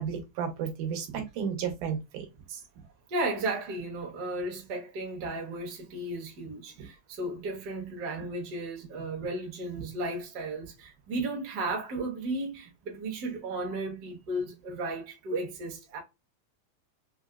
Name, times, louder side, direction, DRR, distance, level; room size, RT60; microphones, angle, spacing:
voice 1, 0.0-2.6, right 7 dB, 85° right, 2.3 m, -33 dB
voice 2, 3.1-16.0, right 2 dB, 55° right, 1.1 m, -34 dB
5.2 x 2.0 x 2.3 m
omnidirectional pair, 3.5 m